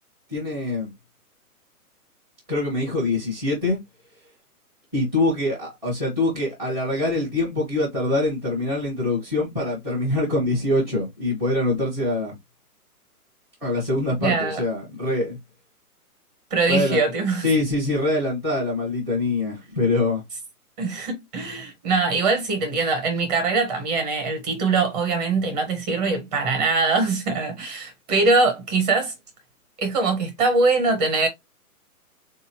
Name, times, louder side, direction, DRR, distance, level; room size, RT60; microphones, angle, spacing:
voice 1, 0.3-0.9 2.5-3.8 4.9-12.3 13.6-15.4 16.7-17.0 17.4-20.2, left 2 dB, 5° right, 0.6 m, -24 dB
voice 2, 14.2-14.6 16.5-17.5 20.8-29.1 29.8-31.3, right 3 dB, 25° right, 1.1 m, -22 dB
3.9 x 2.7 x 2.6 m
hypercardioid pair, 155°, 46 cm